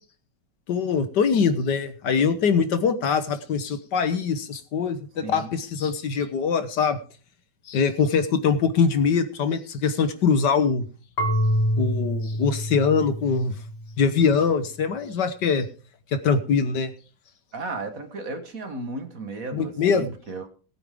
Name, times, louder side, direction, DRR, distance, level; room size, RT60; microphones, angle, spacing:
voice 1, 0.7-5.0 5.3-7.0 7.7-10.8 11.8-13.5 14.0-15.7 16.1-16.9 19.5-20.1, left 5 dB, 65° left, 10 dB, 1.6 m, -23 dB
Marimba xylophone / Wood, 11.2-14.0, equal, 35° left, 1.3 m, -26 dB
voice 2, 17.5-20.5, right 3 dB, 50° right, 7 dB, 1.9 m, -34 dB
19.0 x 8.9 x 3.7 m, 0.38 s
omnidirectional pair, 2.1 m